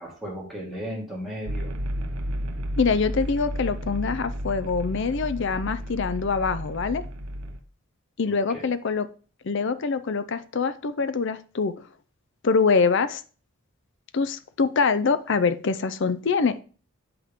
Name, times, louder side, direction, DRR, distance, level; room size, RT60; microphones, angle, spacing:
voice 1, 0.0-1.7 8.3-8.7, equal, ahead, -4 dB, 2.2 m, -36 dB
sound 1, 1.5-7.6, equal, 75° right, 0.8 m, -32 dB
voice 2, 2.8-7.0 8.2-9.1 9.4-11.7 12.4-13.2 14.1-16.6, left 4 dB, 55° left, 13 dB, 0.5 m, -24 dB
7.8 x 5.7 x 3.6 m, 0.39 s
head